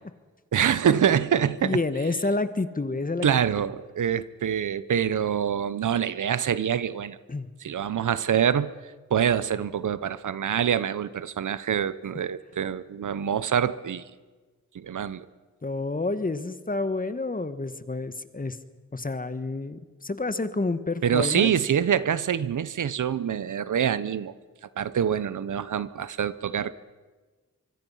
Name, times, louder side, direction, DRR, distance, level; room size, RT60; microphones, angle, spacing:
voice 1, 0.5-1.8 3.2-7.2 7.6-8.7 9.1-14.0 14.7-15.3 21.0-24.3 24.8-26.7, right 8 dB, 85° right, 16 dB, 0.8 m, -25 dB
voice 2, 1.6-3.3 7.3-7.5 15.6-18.6 18.9-21.5, left 3 dB, 30° left, 11 dB, 1.4 m, -29 dB
24.5 x 24.0 x 5.6 m, 1.3 s
cardioid pair, 65°, 30 cm